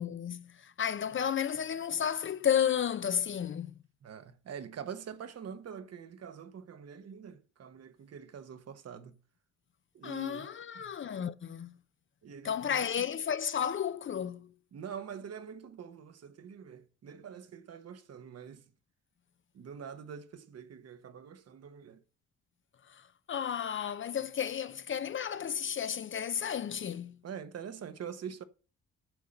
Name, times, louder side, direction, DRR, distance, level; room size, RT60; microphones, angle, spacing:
voice 1, 0.0-3.8 10.0-11.8 12.4-14.5 22.9-27.2, left 8 dB, 40° left, 0.7 m, -33 dB
voice 2, 4.0-9.2 9.9-10.5 10.7-10.9 12.2-12.9 14.7-18.6 19.5-22.0 27.2-28.4, right 7 dB, 55° right, 1.2 m, -45 dB
9.2 x 5.7 x 6.5 m
cardioid pair, 90°, 30 cm